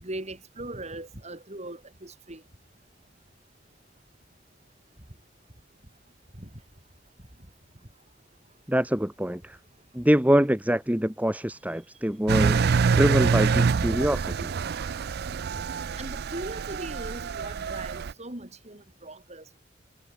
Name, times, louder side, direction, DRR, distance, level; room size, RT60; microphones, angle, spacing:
voice 1, 0.0-2.4 6.4-6.5 16.0-19.6, right 1 dB, 35° right, 3.4 m, -39 dB
voice 2, 8.7-9.6 9.9-12.6 13.0-14.5, equal, 10° right, 1.1 m, -24 dB
Engine, 12.3-18.1, right 5 dB, 55° right, 0.4 m, -26 dB
head